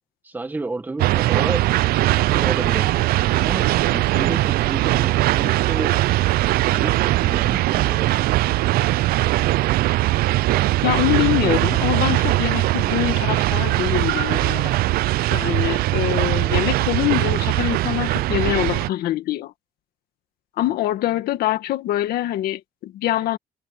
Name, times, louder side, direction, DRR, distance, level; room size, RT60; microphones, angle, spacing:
voice 1, 0.2-1.7 2.3-3.1 3.3-5.9 6.7-8.1, right 2 dB, 10° right, 1.8 m, -31 dB
sound 1, 1.0-18.9, right 17 dB, 80° right, 0.4 m, -20 dB
voice 2, 10.8-14.9 15.3-19.5 20.6-23.4, left 14 dB, 90° left, 2.0 m, -24 dB
cardioid pair, 160°, 15 cm